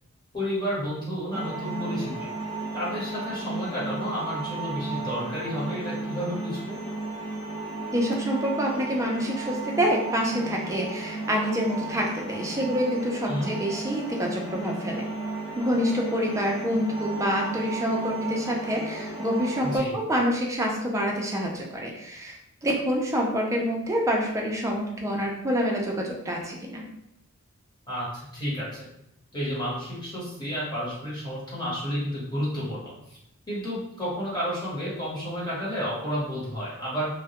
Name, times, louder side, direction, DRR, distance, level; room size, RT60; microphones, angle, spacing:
voice 1, 0.3-2.3 2.7-6.8 13.3-13.5 19.6-19.9 27.9-28.1 28.3-28.9 29.3-33.2 33.5-37.1, equal, 20° left, -8 dB, 0.9 m, -31 dB
sound 1, 1.3-19.8, right 2 dB, 70° left, 0.5 m, -34 dB
voice 2, 7.9-15.1 15.6-22.4 22.6-26.9, equal, 15° right, -1 dB, 0.4 m, -27 dB
2.2 x 2.1 x 2.8 m, 0.81 s
head